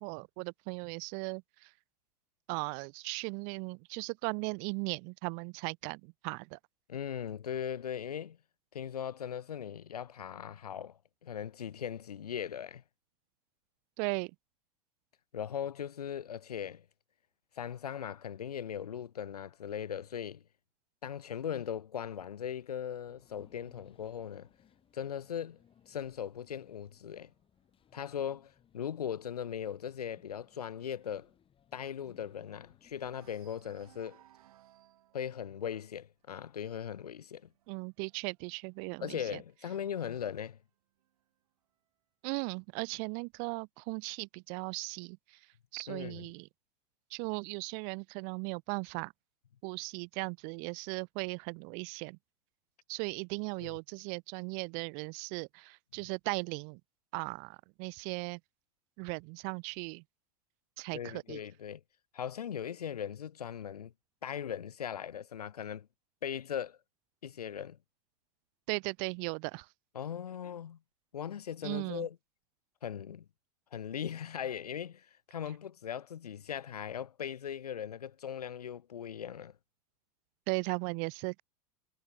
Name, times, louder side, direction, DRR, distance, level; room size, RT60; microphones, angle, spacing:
voice 1, 0.0-1.7 2.5-6.6 14.0-14.3 37.7-39.4 42.2-45.2 45.7-46.5 47.1-49.1 49.6-52.2 52.9-56.8 57.1-58.4 59.0-60.0 60.8-61.4 68.7-69.7 71.6-72.1 80.5-81.4, right 40 dB or more, 45° right, 0.5 m, -37 dB
voice 2, 6.9-8.4 8.7-12.8 15.3-16.8 17.5-20.4 21.0-24.5 24.9-25.6 25.9-27.3 27.9-31.3 31.7-34.2 35.1-37.5 39.0-40.6 45.9-46.3 53.6-53.8 60.9-61.8 62.1-63.9 64.2-65.9 66.2-66.8 67.2-67.8 69.9-70.8 71.1-72.2 72.8-73.2 73.7-79.6, left 9 dB, 75° left, 1.5 m, -39 dB
sound 1, 23.1-33.3, left 9 dB, 25° left, 2.9 m, -65 dB
sound 2, 24.5-27.9 28.3-28.7 28.9-29.0 29.4-32.7 33.1-39.6 40.5-41.5, right 13 dB, 65° right, 5.3 m, -66 dB
figure-of-eight pair, 85°, 20 cm